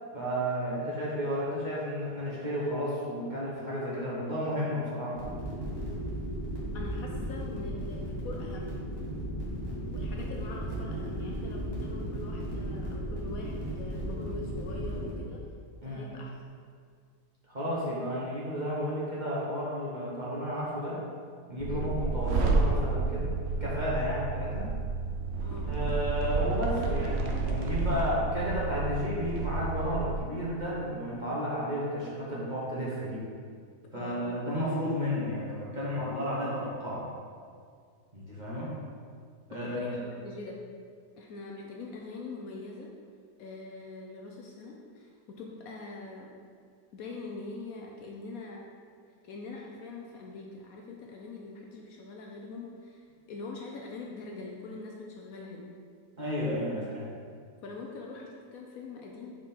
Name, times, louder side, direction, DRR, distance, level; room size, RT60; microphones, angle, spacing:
voice 1, 0.1-5.2 15.8-16.1 17.5-21.0 21.5-24.7 25.6-33.3 33.9-37.1 38.1-38.7 39.5-39.9 56.2-57.0, equal, 30° right, -7 dB, 1.1 m, -32 dB
sound 1, 5.2-15.1, right 1 dB, 15° left, 1.4 m, -35 dB
voice 2, 6.7-8.8 9.9-15.5 15.8-16.3 21.7-21.9 25.4-25.7 33.9-34.5 39.6-40.6 41.2-42.9 43.4-46.3 46.9-48.7 49.2-55.7 56.7-56.8 57.6-59.4, left 3 dB, 65° left, 0 dB, 1.0 m, -43 dB
sound 2, 21.6-30.2, right 3 dB, 65° right, 0.6 m, -30 dB
6.1 x 4.7 x 4.2 m, 2.1 s
omnidirectional pair, 1.8 m